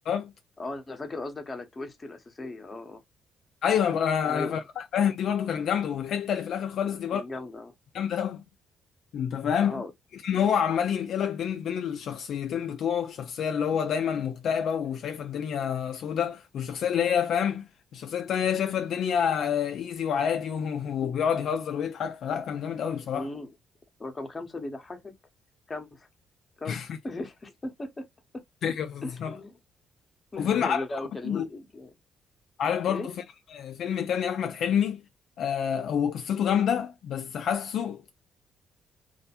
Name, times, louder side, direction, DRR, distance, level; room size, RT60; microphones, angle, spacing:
voice 1, 0.6-3.0 4.2-4.6 6.8-7.7 9.6-9.9 23.1-23.5 24.0-25.1 25.7-26.1 26.6-26.8 27.0-28.1 28.3-28.4 29.0-29.6 30.3-31.9 32.9-33.1, left 2 dB, 25° left, 0.8 m, -37 dB
voice 2, 3.6-7.2 7.9-8.4 9.1-9.8 10.2-17.6 17.9-23.3 26.7-27.0 28.6-29.4 30.4-30.8 31.3-31.5 32.6-33.2 33.5-35.0 35.4-38.0, left 8 dB, 70° left, 0.3 m, -28 dB
2.4 x 2.1 x 2.8 m
cardioid pair, 90°, 0 cm